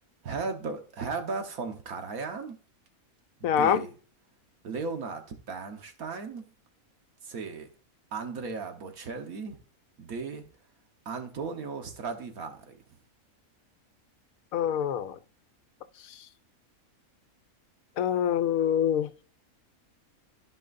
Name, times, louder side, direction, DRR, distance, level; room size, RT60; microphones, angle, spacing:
voice 1, 0.2-2.6 3.4-3.9 4.6-6.5 7.2-7.7 8.1-9.6 10.0-10.4 11.1-12.8, right 4 dB, 85° right, 1.7 m, -36 dB
voice 2, 3.4-3.8 14.5-15.2 18.0-19.2, left 9 dB, 75° left, 1.0 m, -25 dB
14.0 x 5.3 x 2.5 m
omnidirectional pair, 1.5 m